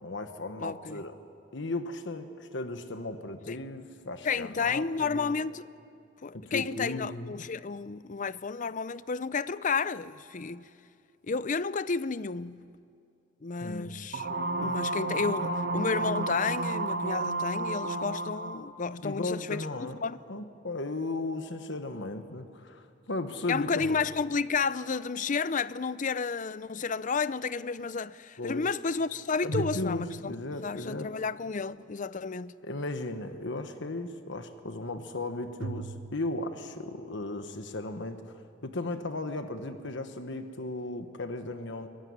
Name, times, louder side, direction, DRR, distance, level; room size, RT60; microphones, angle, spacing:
voice 1, 0.0-1.1 1.5-5.4 6.3-7.4 13.6-13.9 19.0-20.0 20.3-23.9 28.4-28.6 29.4-31.1 32.6-41.9, left 2 dB, 65° left, 1.3 m, -36 dB
voice 2, 0.6-1.0 3.5-3.6 4.2-5.7 6.2-10.7 11.3-12.7 13.4-14.3 14.6-19.7 20.0-20.2 23.5-32.6, left 5 dB, 40° left, 0.6 m, -32 dB
sound 1, 14.1-18.6, right 2 dB, 55° right, 1.4 m, -31 dB
sound 2, 23.8-25.0 29.5-31.1 35.6-36.7, right 4 dB, 80° right, 0.8 m, -40 dB
23.5 x 22.0 x 9.7 m
head